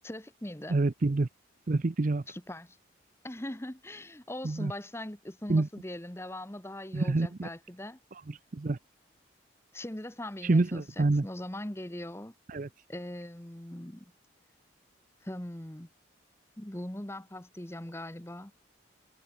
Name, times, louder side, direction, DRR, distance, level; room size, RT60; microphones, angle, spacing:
voice 1, 0.0-0.8 2.3-2.8 3.2-8.0 9.7-12.3 12.9-14.0 15.2-15.9 16.6-18.5, left 1 dB, 15° left, 1.1 m, -41 dB
voice 2, 0.7-1.3 1.7-2.2 4.4-4.7 5.5-5.7 6.9-7.5 8.5-8.8 10.4-11.2 12.5-12.7, right 2 dB, 40° right, 0.5 m, -27 dB
head